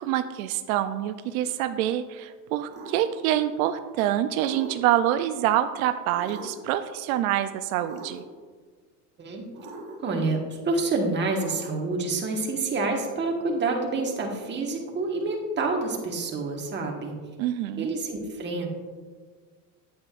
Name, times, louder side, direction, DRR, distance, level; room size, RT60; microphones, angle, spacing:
voice 1, 0.0-8.2 17.4-17.9, right 12 dB, 85° right, 10 dB, 0.5 m, -26 dB
sound 1, 2.7-3.1 4.4-5.0 6.1-6.7 7.8-8.4 9.5-10.2 11.3-12.0, right 2 dB, 50° right, 2.4 m, -41 dB
voice 2, 10.0-17.1 17.8-18.7, right 3 dB, 25° right, 1 dB, 1.4 m, -28 dB
8.7 x 8.5 x 2.5 m, 1.5 s
supercardioid pair, 125°, 41 cm